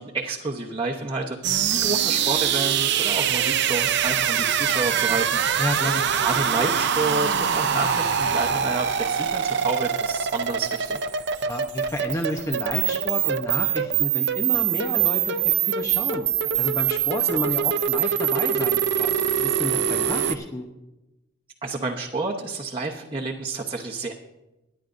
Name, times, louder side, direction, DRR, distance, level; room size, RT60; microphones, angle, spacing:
voice 1, 0.0-5.4 6.1-11.0 17.3-17.5 21.6-24.1, right 3 dB, 25° right, -2 dB, 0.9 m, -29 dB
sound 1, 1.4-20.3, right 8 dB, 55° right, 0.6 m, -24 dB
voice 2, 5.6-6.1 11.4-16.3 16.6-20.7, left 1 dB, 15° left, 2 dB, 0.8 m, -31 dB
23.5 x 10.5 x 2.6 m, 0.99 s
head